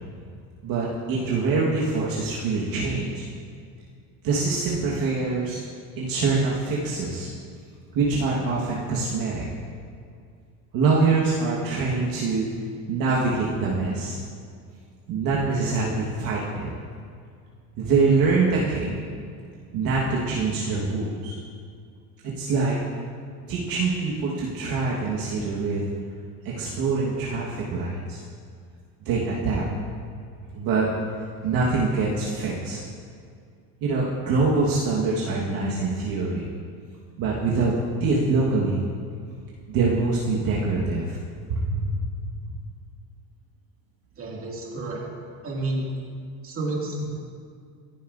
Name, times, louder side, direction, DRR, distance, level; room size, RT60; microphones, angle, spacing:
voice 1, 0.6-3.3 4.2-5.6 6.0-7.3 7.9-9.4 10.7-12.5 12.9-14.2 15.1-16.7 17.8-19.0 19.7-21.3 22.2-22.8 23.5-25.8 26.4-28.2 29.0-29.6 30.5-30.9 31.2-32.8 33.8-36.4 37.2-37.7 38.0-38.9 39.7-41.2 41.5-42.1, right 3 dB, 55° right, -5 dB, 1.5 m, -24 dB
voice 2, 44.2-45.0 45.4-45.9 46.4-47.0, right 2 dB, 30° right, -3 dB, 2.3 m, -30 dB
15.0 x 6.9 x 2.6 m, 2.2 s
supercardioid pair, 110°, 42 cm